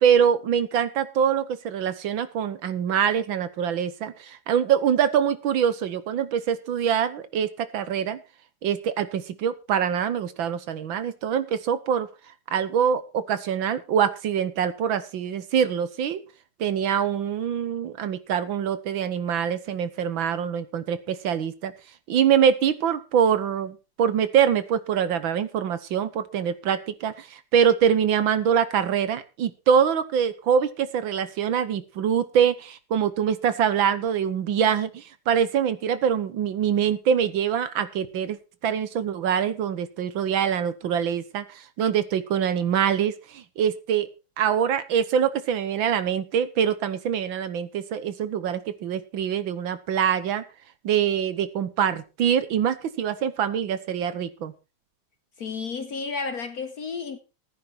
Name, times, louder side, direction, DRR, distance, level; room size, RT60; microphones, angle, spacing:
voice 1, 0.0-8.2 8.6-12.1 12.5-16.2 16.6-21.7 22.1-38.4 38.6-44.1 44.4-50.4 50.8-54.5, right 8 dB, 70° right, 1.6 m, -24 dB
voice 2, 55.4-57.2, left 5 dB, 55° left, 1.2 m, -32 dB
14.5 x 9.4 x 4.4 m
omnidirectional pair, 2.4 m